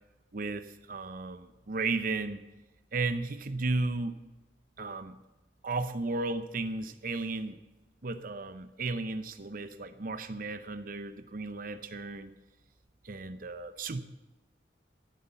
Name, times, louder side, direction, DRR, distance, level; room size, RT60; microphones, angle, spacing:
voice 1, 0.3-2.4 2.9-4.2 4.8-5.2 5.6-7.6 8.0-12.3 13.0-14.0, right 3 dB, 45° right, 11 dB, 0.7 m, -34 dB
13.5 x 11.0 x 6.9 m, 1.1 s
head